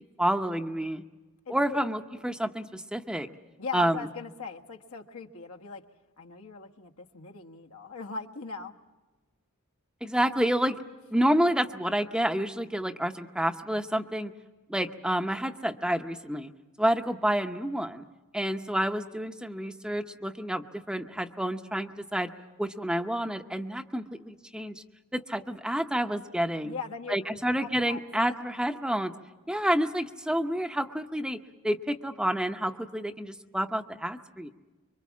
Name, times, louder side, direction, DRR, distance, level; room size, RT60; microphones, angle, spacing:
voice 1, 0.2-1.0 1.5-3.3 3.7-4.0 10.0-10.8 11.1-14.3 14.7-16.5 16.8-18.0 18.3-22.3 22.6-24.8 25.1-26.8 27.1-29.1 29.5-31.4 31.6-34.5, equal, 5° right, 7 dB, 0.7 m, -29 dB
voice 2, 1.5-1.8 3.6-5.8 6.2-8.7 26.6-27.2 27.6-28.0 28.3-28.4, left 4 dB, 80° left, 2 dB, 1.4 m, -39 dB
26.0 x 24.0 x 7.3 m, 1.2 s
head